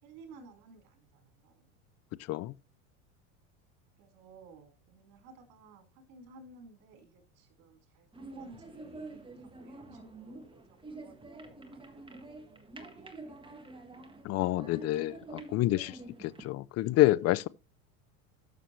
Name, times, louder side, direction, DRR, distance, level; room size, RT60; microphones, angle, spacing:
voice 1, 0.0-1.7 4.0-12.3 12.5-13.7, right 3 dB, 65° right, 4.3 m, -55 dB
sound 1, 8.1-16.5, right 2 dB, 10° right, 1.6 m, -48 dB
voice 2, 14.2-17.5, left 16 dB, 40° left, 0.5 m, -28 dB
13.0 x 6.9 x 3.1 m
supercardioid pair, 105°, 41 cm